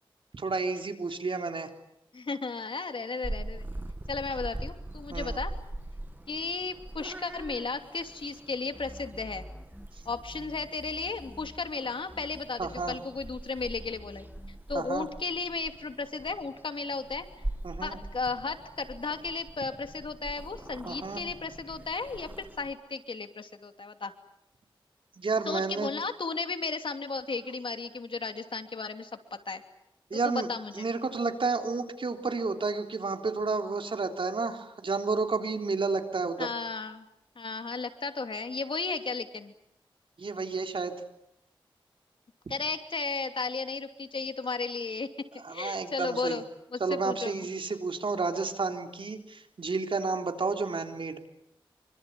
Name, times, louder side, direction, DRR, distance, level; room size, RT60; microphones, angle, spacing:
voice 1, 0.3-1.7 5.1-5.4 12.6-13.0 14.7-15.1 17.6-18.0 20.9-21.2 25.2-25.9 30.1-30.5 30.7-36.5 40.2-40.9 45.4-46.4 46.8-51.2, right 4 dB, 70° right, 5 dB, 3.6 m, -31 dB
voice 2, 2.1-3.7 4.1-5.5 6.3-9.4 10.0-14.2 14.7-17.3 17.8-24.1 25.5-29.6 30.1-30.9 36.4-37.0 37.4-39.5 42.5-45.1 45.5-46.4 46.7-47.3, left 4 dB, 65° left, 7 dB, 2.8 m, -34 dB
Purr / Meow, 3.2-22.7, right 1 dB, 20° right, 2.0 m, -42 dB
sound 1, 8.7-11.8 12.1-14.6, left 1 dB, 10° left, 2.8 m, -48 dB
26.5 x 25.0 x 8.5 m, 0.79 s
wide cardioid pair, 60°, 9 cm